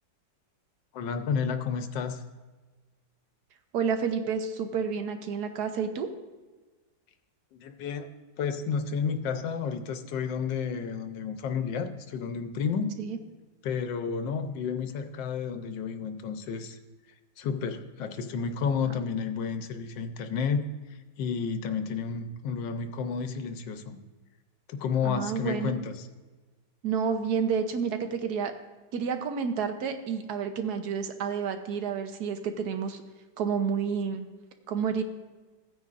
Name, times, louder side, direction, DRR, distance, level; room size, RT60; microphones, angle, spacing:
voice 1, 0.9-2.2 7.5-8.1 8.4-12.9 13.6-16.8 17.4-20.7 21.2-24.0 24.7-26.1, left 6 dB, 85° left, 8 dB, 1.4 m, -31 dB
voice 2, 3.7-6.1 13.0-13.2 25.0-25.8 26.8-28.5 28.9-33.0 33.4-34.3 34.7-35.0, right 6 dB, 65° right, 7 dB, 1.3 m, -30 dB
15.5 x 9.3 x 2.5 m, 1.3 s
omnidirectional pair, 1.9 m